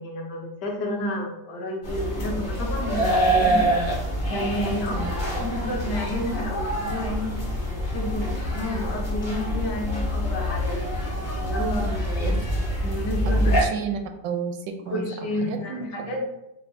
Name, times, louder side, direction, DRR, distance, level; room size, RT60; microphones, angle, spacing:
voice 1, 0.0-3.6 4.3-7.4 7.7-10.8 11.4-13.7 14.9-16.3, left 1 dB, 75° left, 1 dB, 1.3 m, -31 dB
sound 1, 1.8-13.6, equal, 55° left, 0.5 m, -26 dB
voice 2, 13.3-16.1, right 6 dB, 85° right, 6 dB, 1.2 m, -32 dB
6.5 x 2.2 x 2.6 m, 0.88 s
omnidirectional pair, 1.9 m